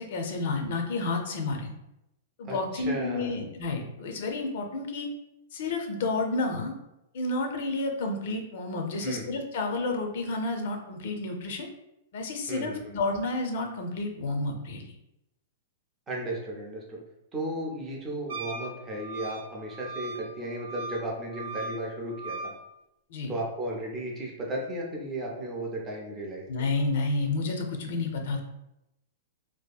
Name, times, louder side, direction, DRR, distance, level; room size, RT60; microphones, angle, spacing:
voice 1, 0.0-1.7 2.4-5.1 5.5-6.8 7.1-11.7 12.1-14.9 23.1-23.3 26.5-28.4, left 3 dB, 50° left, 4 dB, 0.4 m, -30 dB
voice 2, 2.4-3.4 9.0-9.2 12.5-13.0 16.1-17.0 17.3-22.5 23.3-26.4, right 1 dB, 15° right, -2 dB, 0.4 m, -35 dB
Wind instrument woodwind instrument, 18.3-22.6, right 2 dB, 85° right, 0.7 m, -39 dB
2.7 x 2.4 x 2.2 m, 0.88 s
supercardioid pair, 175°, 0 cm